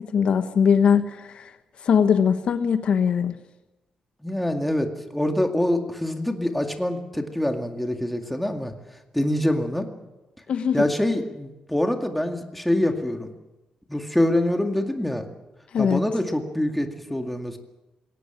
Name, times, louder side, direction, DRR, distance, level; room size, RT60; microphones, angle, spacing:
voice 1, 0.0-1.5 1.8-3.3 10.5-10.8 15.7-16.0, left 7 dB, 55° left, 9 dB, 1.2 m, -21 dB
voice 2, 4.2-8.7 9.1-9.9 10.7-13.3 13.9-15.3 15.8-17.6, left 1 dB, 5° left, 4 dB, 2.2 m, -25 dB
21.5 x 18.0 x 8.9 m, 1.0 s
wide cardioid pair, 145°, 2 cm